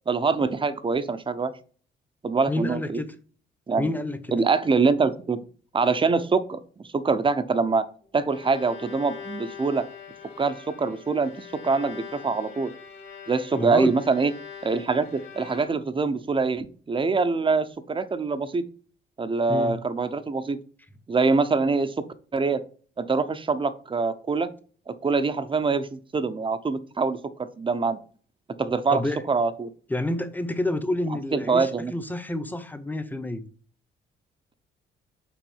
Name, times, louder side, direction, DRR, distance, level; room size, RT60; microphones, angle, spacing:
voice 1, 0.1-1.5 2.2-3.0 3.7-3.9 4.3-5.4 5.7-6.6 6.9-7.8 8.1-9.8 10.4-12.7 13.3-14.3 14.6-18.7 19.2-20.6 21.1-22.0 22.3-22.6 23.0-24.5 24.9-28.0 28.6-29.0 29.3-29.7 31.3-31.9, right 4 dB, 25° right, 0.7 m, -24 dB
voice 2, 2.5-3.1 3.8-4.4 13.6-13.9 19.5-19.8 28.9-29.2 29.9-33.4, left 1 dB, 10° left, 0.9 m, -28 dB
Bowed string instrument, 8.0-16.1, left 7 dB, 65° left, 2.5 m, -43 dB
6.1 x 3.9 x 5.6 m
cardioid pair, 90°, 20 cm